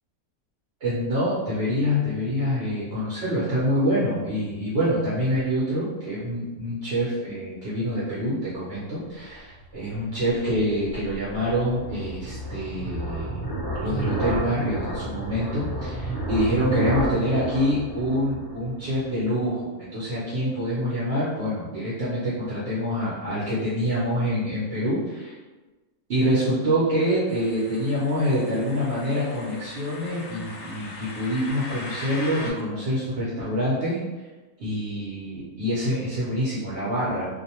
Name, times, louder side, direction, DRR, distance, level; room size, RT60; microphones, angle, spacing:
voice 1, 0.8-13.4 13.8-25.4 26.1-34.0 34.6-37.3, equal, 50° right, -9 dB, 0.8 m, -26 dB
sound 1, 9.5-19.1, right 1 dB, 30° left, 0.4 m, -31 dB
sound 2, 27.3-32.5, left 2 dB, 85° left, 1.1 m, -40 dB
2.5 x 2.2 x 2.8 m, 1.2 s
omnidirectional pair, 1.5 m